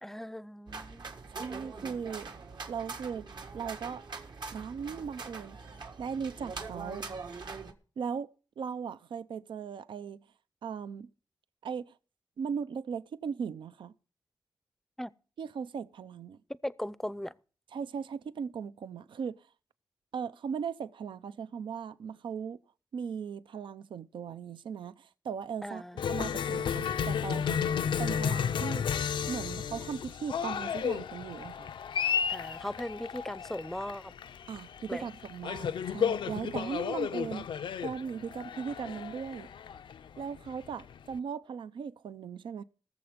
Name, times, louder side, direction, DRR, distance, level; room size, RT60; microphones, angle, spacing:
voice 1, 0.0-1.1 15.0-15.1 16.6-17.3 25.6-26.0 32.3-34.1 34.9-35.1, left 1 dB, 5° left, 0.5 m, -38 dB
sound 1, 0.7-7.7, right 4 dB, 65° right, 1.6 m, -43 dB
voice 2, 1.3-2.3 2.7-3.3 3.5-4.1 4.5-5.6 6.0-7.0 8.0-8.3 8.6-10.2 10.6-11.1 11.6-11.9 12.4-13.9 15.4-16.4 17.7-19.4 20.1-22.6 22.9-25.8 26.1-27.6 28.0-28.9 29.3-31.7 34.5-37.5 37.8-39.5 40.2-42.6, right 6 dB, 90° right, 0.6 m, -38 dB
Cheering, 26.0-41.1, left 7 dB, 80° left, 0.5 m, -33 dB
19.0 x 7.0 x 5.1 m
wide cardioid pair, 90°, 8 cm